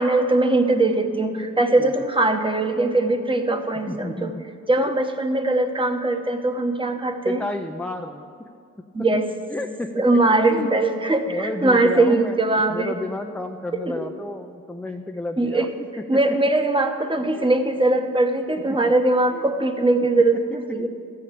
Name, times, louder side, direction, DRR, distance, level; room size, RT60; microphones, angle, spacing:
voice 1, 0.0-4.3 4.7-7.4 8.9-9.3 9.9-12.9 13.8-14.1 15.4-15.7 16.1-20.9, right 2 dB, 15° right, 6 dB, 0.9 m, -21 dB
voice 2, 3.9-4.4 4.8-4.9 7.2-8.3 9.5-9.9 10.5-10.9 11.3-15.7 17.3-17.5 18.0-18.1 19.3-19.5, left 2 dB, 5° left, 5 dB, 0.4 m, -32 dB
13.0 x 5.0 x 8.4 m, 2.5 s
cardioid pair, 90°, 30 cm